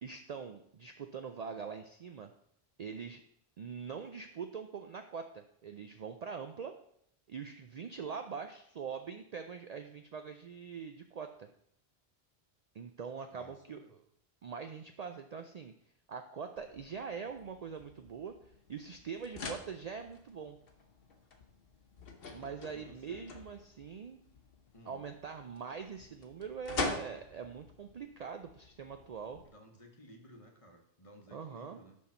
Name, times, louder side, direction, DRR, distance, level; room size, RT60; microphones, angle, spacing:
voice 1, 0.0-2.3 2.8-3.2 3.6-6.7 7.3-11.5 12.7-13.8 14.4-15.7 16.1-20.6 22.3-24.2 24.9-29.4 31.3-31.8, right 6 dB, 55° right, 6 dB, 0.4 m, -43 dB
voice 2, 13.3-14.0 22.7-23.4 24.7-25.0 29.4-32.0, equal, 35° left, 3 dB, 1.0 m, -57 dB
sound 1, 16.6-29.5, left 3 dB, 65° left, 1.0 m, -45 dB
6.3 x 5.5 x 4.3 m, 0.70 s
omnidirectional pair, 1.1 m